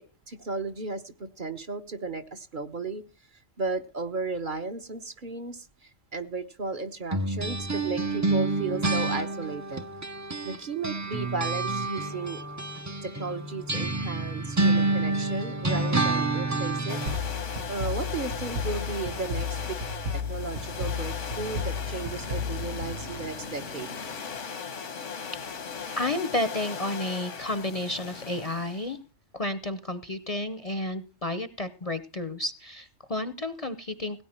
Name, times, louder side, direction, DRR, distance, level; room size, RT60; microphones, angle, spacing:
voice 1, 0.0-3.0 3.3-9.8 10.4-12.4 13.0-17.0 17.7-19.8 20.1-24.0, right 4 dB, 45° right, 6 dB, 1.2 m, -35 dB
sound 1, 7.1-10.6 10.8-17.2, right 2 dB, 20° right, 0.6 m, -28 dB
sound 2, 16.9-28.9, left 6 dB, 85° left, 1.6 m, -38 dB
sound 3, 17.1-23.7, left 3 dB, 75° right, 1.4 m, -34 dB
voice 2, 25.4-29.0 29.3-34.2, left 2 dB, 35° left, 13 dB, 0.8 m, -31 dB
17.0 x 9.4 x 4.4 m, 0.34 s
omnidirectional pair, 1.2 m